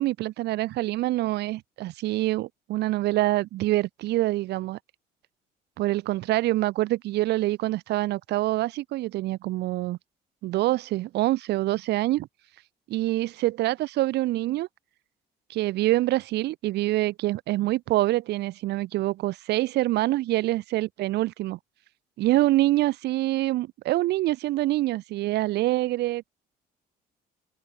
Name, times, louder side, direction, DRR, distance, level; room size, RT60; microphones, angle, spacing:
voice 1, 0.0-4.8 5.8-10.0 10.4-12.3 12.9-14.7 15.5-21.6 22.2-26.3, right 16 dB, 80° right, 6.9 m, -25 dB
cardioid pair, 110°, 17 cm